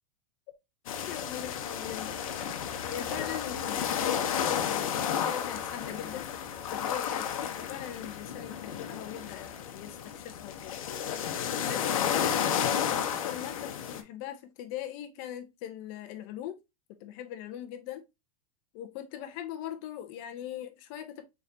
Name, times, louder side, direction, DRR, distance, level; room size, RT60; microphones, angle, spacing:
sound 1, 0.9-14.0, left 8 dB, 70° left, 0.8 m, -32 dB
voice 1, 1.1-2.1 2.9-6.3 6.7-10.7 11.6-16.6 17.0-18.0 18.7-21.2, left 11 dB, 30° left, 0.7 m, -40 dB
4.4 x 3.7 x 2.7 m
supercardioid pair, 180°, 18 cm